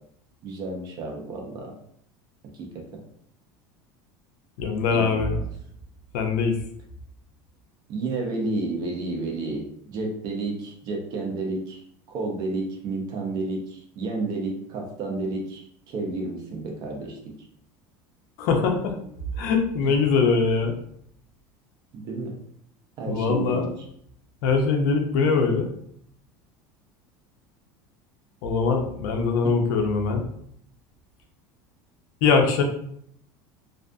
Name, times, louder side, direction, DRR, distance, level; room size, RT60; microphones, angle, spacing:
voice 1, 0.4-1.7 2.5-3.0 4.9-5.4 7.9-11.8 12.1-17.3 19.8-20.0 21.9-22.4 23.0-23.7 29.4-29.5, right 2 dB, 40° right, 0 dB, 0.6 m, -31 dB
voice 2, 4.6-5.3 6.1-6.6 18.4-19.0 19.4-20.8 23.1-23.7 24.4-25.7 28.4-30.2 32.2-32.6, left 4 dB, 70° left, 3 dB, 0.5 m, -22 dB
2.5 x 2.4 x 2.3 m, 0.67 s
cardioid pair, 160°, 10 cm